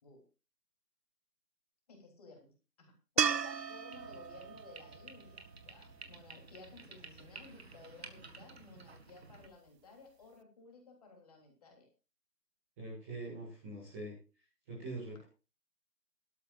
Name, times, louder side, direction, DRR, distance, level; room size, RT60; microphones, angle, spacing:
voice 1, 1.9-11.9, left 3 dB, 25° left, 1 dB, 3.4 m, -56 dB
sound 1, 3.2-6.4 9.7-9.8, right 7 dB, 85° right, 0.8 m, -36 dB
sound 2, 3.9-9.5, right 3 dB, 40° right, 1.7 m, -53 dB
voice 2, 12.8-14.1 14.7-15.3, right 2 dB, 10° right, -5 dB, 2.1 m, -43 dB
16.5 x 12.5 x 2.5 m, 0.32 s
figure-of-eight pair, 165°, 48 cm